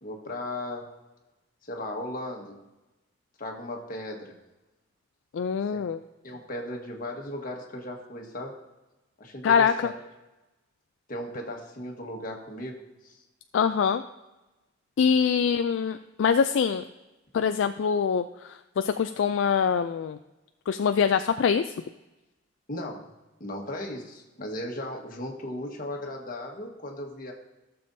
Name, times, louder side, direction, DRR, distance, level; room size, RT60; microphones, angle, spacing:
voice 1, 0.0-0.9 1.7-2.6 3.4-4.4 5.7-5.9 6.2-8.6 9.2-9.9 11.1-13.2 22.7-23.1 23.4-27.3, left 1 dB, 45° left, 1 dB, 1.5 m, -36 dB
voice 2, 5.3-6.0 9.4-9.7 13.5-14.0 15.0-16.8 17.3-20.2 20.7-21.7, left 6 dB, 70° left, 9 dB, 0.3 m, -24 dB
15.5 x 6.9 x 2.7 m, 1.0 s
head